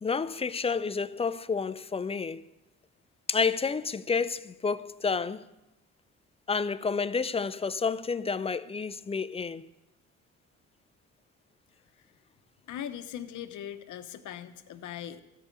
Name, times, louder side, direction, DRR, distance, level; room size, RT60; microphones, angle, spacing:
voice 1, 0.0-2.4 3.3-5.4 6.5-9.6, left 5 dB, 20° left, 0.4 m, -30 dB
voice 2, 12.7-15.2, left 10 dB, 75° left, 0.9 m, -40 dB
13.5 x 5.3 x 8.6 m
cardioid pair, 90°, 30 cm